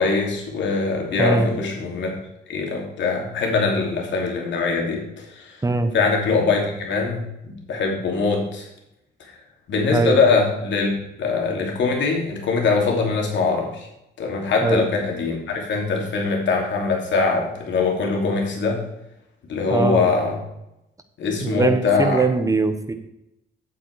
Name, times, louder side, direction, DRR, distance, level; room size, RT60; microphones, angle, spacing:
voice 1, 0.0-2.1 2.5-5.6 5.9-8.7 9.7-13.9 14.2-18.8 19.5-20.4 21.2-22.2, left 4 dB, 70° left, 0 dB, 2.9 m, -22 dB
voice 2, 1.2-1.5 5.6-5.9 9.9-10.2 14.6-14.8 19.7-20.0 21.4-22.9, right 3 dB, 15° right, 9 dB, 1.2 m, -21 dB
8.3 x 7.9 x 4.8 m, 0.87 s
cardioid pair, 90°, 20 cm